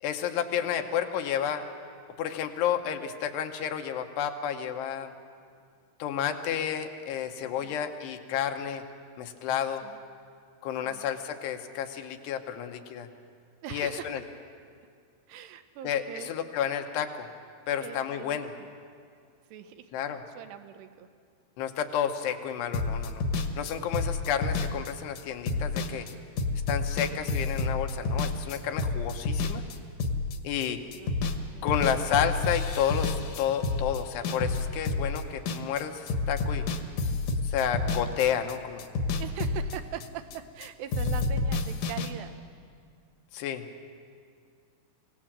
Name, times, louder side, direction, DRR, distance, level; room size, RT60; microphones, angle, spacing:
voice 1, 0.0-1.7 2.2-5.1 6.0-8.8 9.2-9.8 10.6-13.1 13.7-14.2 15.8-17.3 17.7-18.5 19.9-20.2 21.6-23.2 23.6-26.1 26.7-29.6 30.4-30.8 31.6-36.7 37.4-38.9 43.3-43.7, left 9 dB, 85° left, 5 dB, 3.2 m, -31 dB
voice 2, 13.6-14.2 15.3-16.3 17.8-18.7 19.5-19.9 20.3-21.1 30.5-31.2 31.5-31.9 37.1-37.4 39.2-42.3, right 10 dB, 85° right, 9 dB, 3.1 m, -42 dB
sound 1, 22.7-30.7 30.9-31.4 31.7-35.8 36.1-40.7 40.9-42.1, left 3 dB, 65° left, 2.2 m, -29 dB
25.0 x 17.5 x 7.5 m, 2.2 s
omnidirectional pair, 4.7 m